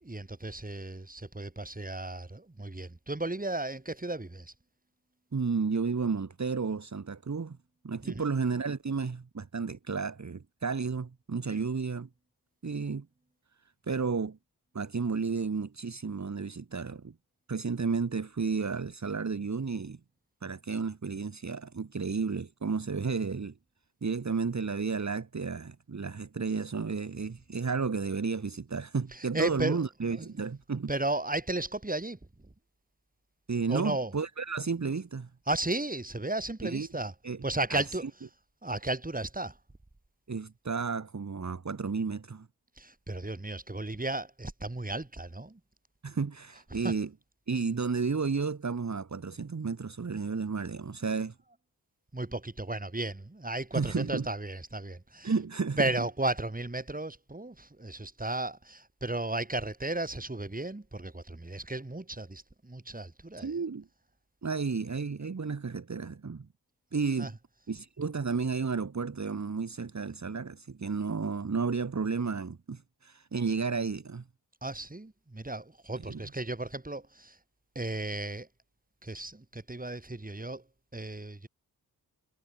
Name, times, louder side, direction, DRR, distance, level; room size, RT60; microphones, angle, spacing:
voice 1, 0.0-4.5 8.0-8.3 11.5-11.6 29.1-29.8 30.1-30.3 30.9-32.2 33.7-34.1 35.5-37.1 37.4-38.1 38.6-39.6 42.8-45.6 46.8-46.9 52.1-55.3 55.8-63.5 67.2-67.3 74.6-77.4 77.7-78.5 79.0-80.6 80.9-81.5, right 2 dB, 20° right, 4.4 m, -34 dB
voice 2, 5.3-7.6 7.8-12.1 12.6-13.1 13.9-14.4 14.7-17.1 17.5-20.0 20.4-23.5 24.0-30.9 33.5-35.3 36.6-36.9 37.2-37.4 37.7-38.0 40.3-42.5 46.0-47.1 47.5-51.4 53.7-54.3 55.2-55.9 63.4-63.9 64.4-66.5 66.9-67.3 67.7-74.2 76.0-76.2, right 5 dB, 40° right, 2.0 m, -32 dB
cardioid pair, 45°, 41 cm